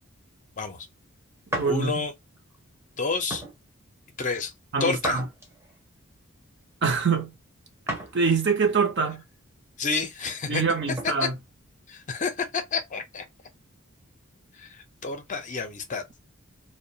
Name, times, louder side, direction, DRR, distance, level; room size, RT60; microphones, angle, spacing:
voice 1, 0.6-0.9 1.7-2.1 3.0-3.4 4.2-4.5 4.8-5.2 9.8-10.6 11.2-11.3 11.9-13.2 14.6-16.2, left 4 dB, 35° left, 0.5 m, -29 dB
sound 1, 1.5-1.8 2.4-2.6 3.3-3.6 5.0-5.8 7.9-8.2 8.7-8.8 10.4-11.1, right 1 dB, 15° right, 0.6 m, -34 dB
voice 2, 1.5-2.0 4.7-5.2 6.8-7.3 8.1-9.2 10.5-11.3, right 5 dB, 55° right, 0.6 m, -24 dB
2.3 x 2.1 x 2.7 m
head